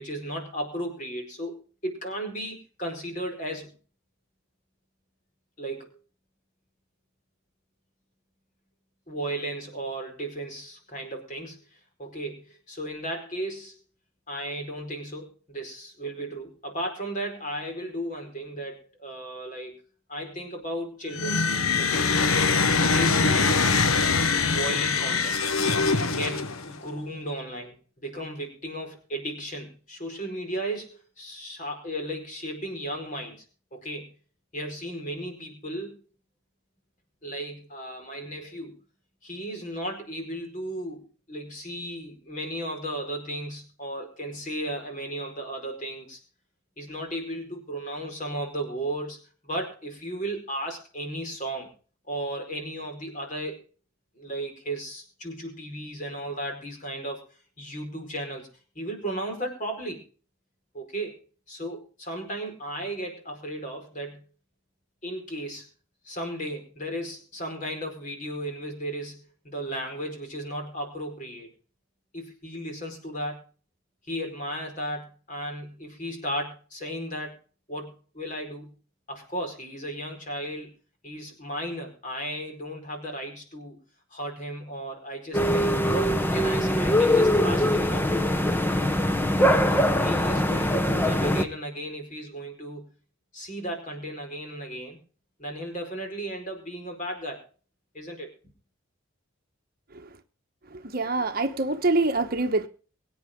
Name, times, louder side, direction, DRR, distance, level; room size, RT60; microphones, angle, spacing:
voice 1, 0.0-3.7 5.6-6.0 9.1-13.8 14.3-19.8 20.1-21.5 21.8-22.1 22.9-23.5 24.5-25.4 26.0-33.4 33.7-34.1 34.5-36.0 37.2-38.7 39.2-46.2 46.8-51.7 52.1-53.6 54.1-57.2 57.6-58.5 58.7-60.0 60.7-61.2 61.5-64.2 65.0-65.7 66.0-71.5 72.1-73.4 74.1-77.3 77.7-78.7 79.1-80.7 81.0-83.8 84.1-88.4 89.5-92.9 93.3-95.0 95.4-97.4 97.9-98.3, right 1 dB, 35° left, 4.8 m, -35 dB
sound 1, 21.1-26.8, left 4 dB, 85° left, 1.2 m, -23 dB
sound 2, 85.3-91.4, equal, 10° left, 0.9 m, -22 dB
voice 2, 100.7-102.7, right 2 dB, 45° right, 1.1 m, -25 dB
23.5 x 8.8 x 3.8 m
head